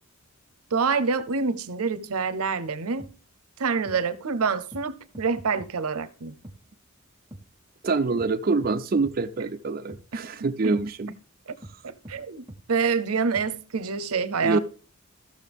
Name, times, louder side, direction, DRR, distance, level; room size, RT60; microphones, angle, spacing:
voice 1, 0.7-3.1 3.6-6.3 10.1-10.2 10.6-10.8 11.8-14.6, right 5 dB, 90° right, 0.7 m, -27 dB
sound 1, 3.0-3.1 3.8-4.0 4.7-4.8 5.1-5.7 6.4-6.6 7.3-7.4 8.2-8.3 8.6-8.7 9.0-9.2 9.9-10.0 10.7-10.9 11.6-11.8 12.0-12.2 12.5-12.6 13.3-13.4, right 1 dB, 15° right, 0.9 m, -43 dB
voice 2, 7.8-11.1 14.4-14.6, right 3 dB, 40° right, 0.4 m, -25 dB
14.0 x 6.5 x 3.5 m
head